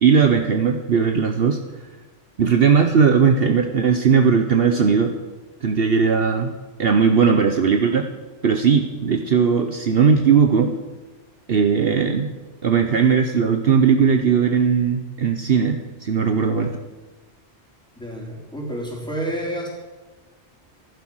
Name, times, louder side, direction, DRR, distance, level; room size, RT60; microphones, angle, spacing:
voice 1, 0.0-1.6 2.4-5.1 5.6-6.5 6.8-8.1 8.4-10.7 11.5-12.3 12.6-16.7, right 6 dB, 60° right, 6 dB, 1.1 m, -18 dB
voice 2, 18.0-19.7, right 1 dB, 5° left, -3 dB, 3.7 m, -29 dB
14.0 x 11.5 x 6.3 m, 1.2 s
omnidirectional pair, 1.2 m